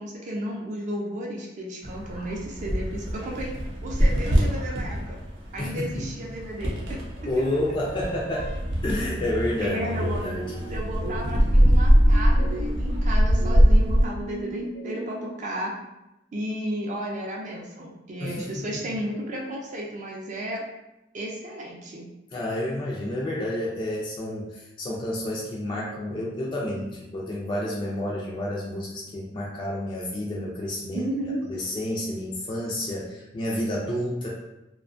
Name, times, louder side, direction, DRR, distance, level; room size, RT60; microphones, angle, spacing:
voice 1, 0.0-5.2 5.5-6.8 7.3-7.4 9.6-10.2 10.7-15.7 16.3-20.6 21.1-22.1 30.9-31.4, right 1 dB, 40° right, -2 dB, 0.4 m, -33 dB
sound 1, 1.8-14.0, equal, 80° right, 0.7 m, -23 dB
voice 2, 5.6-6.1 7.3-8.5 8.8-9.8 10.1-10.5 18.2-18.6 22.3-31.1 31.5-34.3, left 1 dB, 25° left, -4 dB, 0.3 m, -30 dB
sound 2, 10.0-15.3, right 1 dB, 70° left, 0.6 m, -37 dB
2.6 x 2.2 x 2.4 m, 0.95 s
head